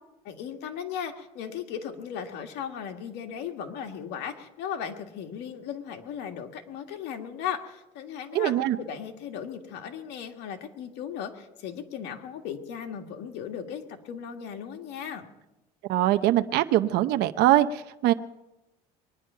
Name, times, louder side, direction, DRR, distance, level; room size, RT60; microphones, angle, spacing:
voice 1, 0.2-15.3, left 8 dB, 70° left, 5 dB, 1.9 m, -37 dB
voice 2, 8.3-8.8 15.9-18.1, right 14 dB, 65° right, 9 dB, 0.7 m, -22 dB
23.0 x 10.0 x 5.6 m, 0.97 s
cardioid pair, 115°, 18 cm